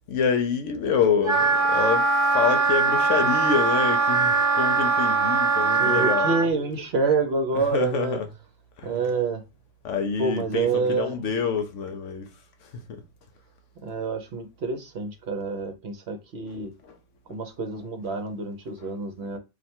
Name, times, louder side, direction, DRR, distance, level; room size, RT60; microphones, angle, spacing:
voice 1, 0.1-6.3 7.7-8.2 8.8-8.9 9.8-12.3 12.6-13.0 16.8-17.0 17.3-17.4 18.8-18.9, left 6 dB, 70° left, 1.0 m, -27 dB
Wind instrument woodwind instrument, 1.2-6.5, right 4 dB, 35° right, 1.2 m, -21 dB
voice 2, 5.8-8.2 8.8-9.4 10.2-11.3 13.8-16.7 17.3-19.4, right 4 dB, 55° right, 0.9 m, -27 dB
3.3 x 2.5 x 4.3 m
omnidirectional pair, 1.4 m